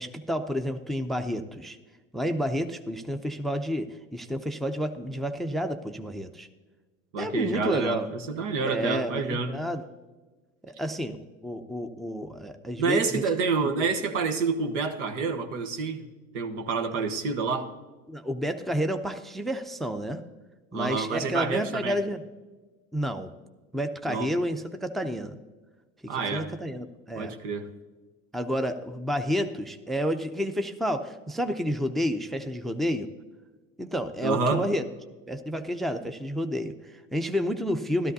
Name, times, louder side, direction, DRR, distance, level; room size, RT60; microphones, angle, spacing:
voice 1, 0.0-1.8 2.1-6.5 7.2-8.1 8.6-9.8 10.7-13.2 13.6-13.9 18.1-20.3 20.7-22.3 22.9-23.3 23.7-25.4 26.0-27.3 28.3-33.1 33.8-34.8 35.3-38.1, equal, ahead, 8 dB, 0.6 m, -30 dB
voice 2, 7.1-9.5 12.8-16.0 16.3-17.7 20.7-22.0 24.1-24.3 26.1-26.5 27.1-27.7 34.2-34.7, right 4 dB, 70° right, 6 dB, 1.2 m, -28 dB
13.5 x 13.0 x 2.7 m, 1.3 s
hypercardioid pair, 75°, 38 cm